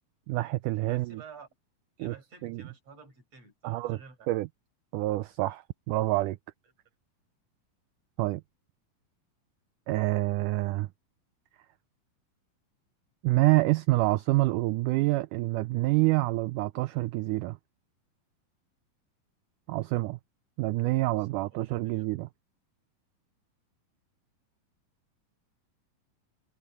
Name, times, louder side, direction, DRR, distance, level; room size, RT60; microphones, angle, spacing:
voice 1, 0.3-1.2 2.0-2.1 2.4-2.6 3.6-4.0 4.3-4.5 4.9-6.4 8.2-8.4 9.9-10.9 13.2-17.6 19.7-20.2 20.6-22.3, right 20 dB, 85° right, 1.8 m, -27 dB
voice 2, 0.8-1.5 2.0-4.3 21.0-22.1, right 5 dB, 45° right, 7.5 m, -51 dB
omnidirectional pair, 4.2 m